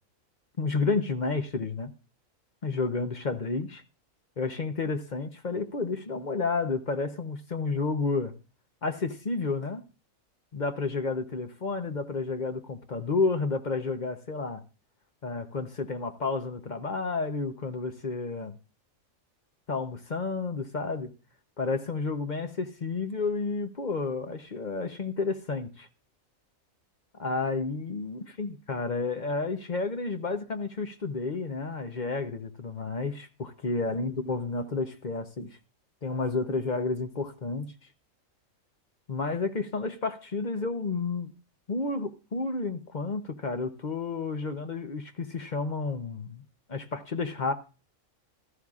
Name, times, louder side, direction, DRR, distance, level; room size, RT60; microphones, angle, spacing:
voice 1, 0.6-1.9 2.6-3.8 4.4-8.3 8.8-9.8 10.5-14.6 15.2-18.6 19.7-21.1 21.6-25.9 27.1-35.6 36.0-37.7 39.1-41.3 41.7-46.4 46.7-47.5, left 3 dB, 40° left, 0.8 m, -31 dB
16.0 x 13.5 x 2.4 m
omnidirectional pair, 1.4 m